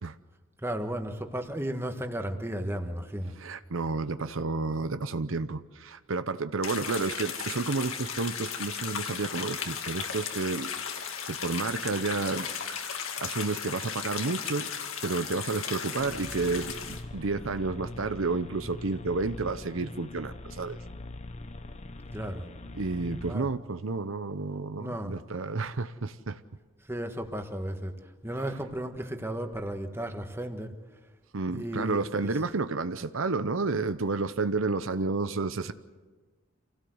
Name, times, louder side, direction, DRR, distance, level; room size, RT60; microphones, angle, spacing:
voice 1, 0.6-3.3 22.1-22.5 23.3-23.5 24.8-25.1 26.9-27.9 28.2-30.7 31.5-32.3, right 1 dB, 10° right, 5 dB, 1.5 m, -34 dB
voice 2, 3.4-10.7 11.3-14.7 15.0-20.8 22.7-26.4 31.3-35.7, right 3 dB, 75° right, 11 dB, 0.8 m, -31 dB
sound 1, 6.6-17.0, left 7 dB, 85° left, 2.2 m, -36 dB
sound 2, 16.0-23.3, left 2 dB, 35° left, 0.8 m, -42 dB
26.5 x 17.0 x 8.0 m, 1.4 s
head